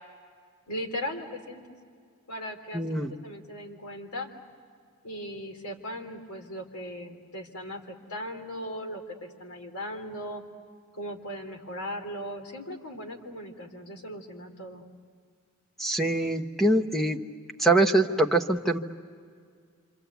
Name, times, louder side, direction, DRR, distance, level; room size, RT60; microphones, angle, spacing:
voice 1, 0.7-1.6 2.3-2.8 3.2-4.3 5.0-10.4 10.9-14.8, equal, 85° left, 4 dB, 3.4 m, -38 dB
voice 2, 2.7-3.1 15.8-17.2 17.6-18.8, right 2 dB, ahead, 4 dB, 1.0 m, -23 dB
26.5 x 26.5 x 8.2 m, 2.1 s
head